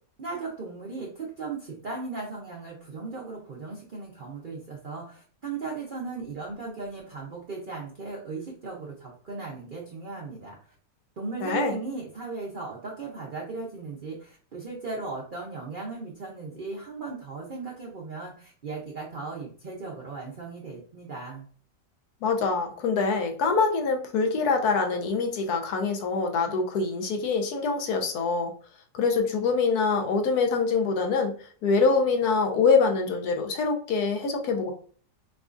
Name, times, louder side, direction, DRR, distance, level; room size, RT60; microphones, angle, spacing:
voice 1, 0.2-10.5 11.2-21.4, right 4 dB, 55° right, -3 dB, 0.5 m, -37 dB
voice 2, 11.4-11.8 22.2-28.5 28.9-34.7, left 4 dB, 70° left, 3 dB, 1.1 m, -25 dB
4.6 x 2.3 x 2.5 m, 0.44 s
omnidirectional pair, 1.8 m